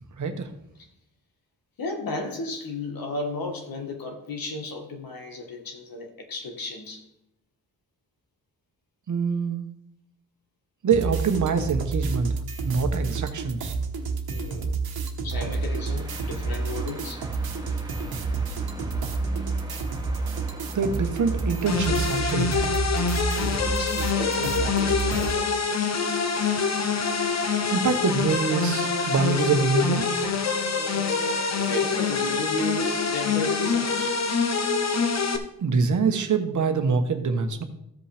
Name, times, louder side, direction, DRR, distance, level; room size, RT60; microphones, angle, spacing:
voice 1, 0.2-0.5 9.1-9.7 10.8-12.3 12.6-13.7 20.7-22.7 27.7-30.1 35.6-37.6, right 5 dB, 55° right, 6 dB, 1.0 m, -25 dB
voice 2, 1.8-7.0 14.3-14.7 15.2-17.2 23.4-25.6 30.7-34.1, left 2 dB, 70° left, 3 dB, 1.7 m, -34 dB
sound 1, 10.9-25.3, right 4 dB, 80° right, 1.2 m, -29 dB
sound 2, 15.3-22.1, right 1 dB, 10° right, 1.3 m, -42 dB
sound 3, 21.7-35.4, left 5 dB, 45° left, 0.9 m, -25 dB
14.5 x 5.3 x 3.4 m, 0.79 s
wide cardioid pair, 125°, 36 cm